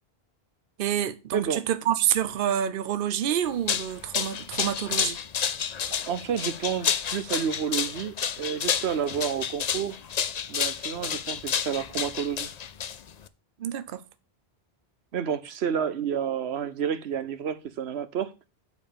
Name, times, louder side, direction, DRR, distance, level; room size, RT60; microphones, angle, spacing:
voice 1, 0.8-5.2 13.6-14.0, right 10 dB, 60° right, 0.8 m, -27 dB
sound 1, 3.4-13.3, left 8 dB, 50° left, 0.6 m, -30 dB
voice 2, 5.8-10.0 10.5-12.5 15.1-18.3, right 8 dB, 85° right, 1.1 m, -30 dB
8.4 x 4.5 x 6.8 m
omnidirectional pair, 1.1 m